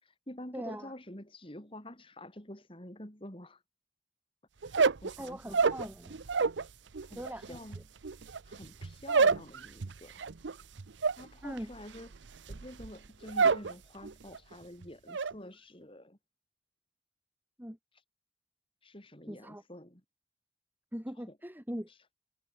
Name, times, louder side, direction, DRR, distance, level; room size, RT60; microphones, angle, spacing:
voice 1, 0.0-3.6 4.6-5.7 7.0-7.8 8.4-10.2 11.2-12.1 12.5-16.2 17.9-18.0 18.8-20.0 21.2-21.4 21.9-22.0, left 1 dB, 30° left, 4.4 m, -48 dB
voice 2, 0.5-0.9 5.2-6.2 7.2-7.6 11.4-11.7 17.6-17.8 19.3-19.6 20.9-21.9, equal, 10° right, 2.3 m, -41 dB
sound 1, 4.6-6.7 6.9-13.7 14.0-14.5 14.8-15.3, right 5 dB, 80° right, 0.7 m, -29 dB
head